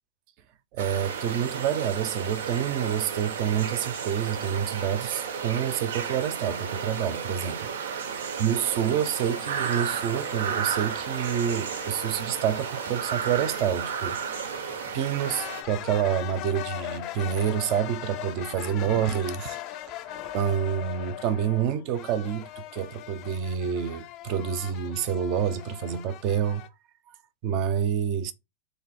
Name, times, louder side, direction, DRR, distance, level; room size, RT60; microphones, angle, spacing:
voice 1, 0.7-7.7 8.4-14.2 14.9-19.6 20.0-26.6 27.4-28.3, right 9 dB, 40° right, 0.5 m, -28 dB
sound 1, 0.8-15.6, right 7 dB, 85° right, 0.7 m, -33 dB
sound 2, 8.8-26.7, left 13 dB, 35° left, 0.4 m, -41 dB
3.8 x 2.6 x 4.2 m
supercardioid pair, 160°, 0 cm